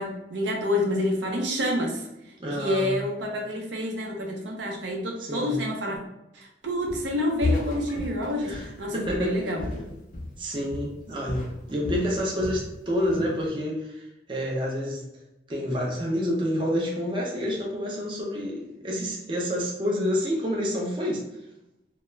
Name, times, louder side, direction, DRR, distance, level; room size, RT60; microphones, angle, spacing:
voice 1, 0.0-2.1 2.5-6.0 6.3-9.8, left 1 dB, 80° right, 0 dB, 0.6 m, -28 dB
voice 2, 2.4-3.0 5.2-5.6 8.4-9.4 10.4-15.0 15.5-21.2, equal, 30° right, -2 dB, 0.4 m, -28 dB
Walk footsteps, 6.9-7.2 7.4-10.4 10.7-11.0 11.3-12.7 13.0-13.4, left 2 dB, 50° left, 0.5 m, -33 dB
2.2 x 2.2 x 3.0 m, 0.92 s
head